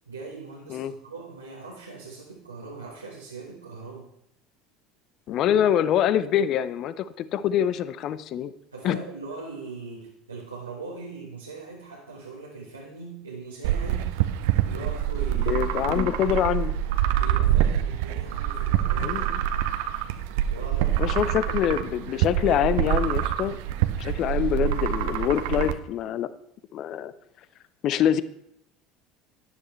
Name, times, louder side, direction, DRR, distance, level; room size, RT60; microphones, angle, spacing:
voice 1, 0.1-4.1 8.7-14.2 14.6-16.4 17.1-19.5 20.5-21.2, right 3 dB, 85° right, -3 dB, 1.4 m, -40 dB
voice 2, 5.3-8.5 8.8-9.0 15.5-16.7 19.0-19.4 21.0-23.6 24.0-26.3 26.7-27.1 27.8-28.2, left 10 dB, 45° left, 16 dB, 0.6 m, -25 dB
sound 1, 13.6-25.7, right 11 dB, 60° right, 0.6 m, -26 dB
13.0 x 9.9 x 3.2 m, 0.74 s
figure-of-eight pair, 70°, 0 cm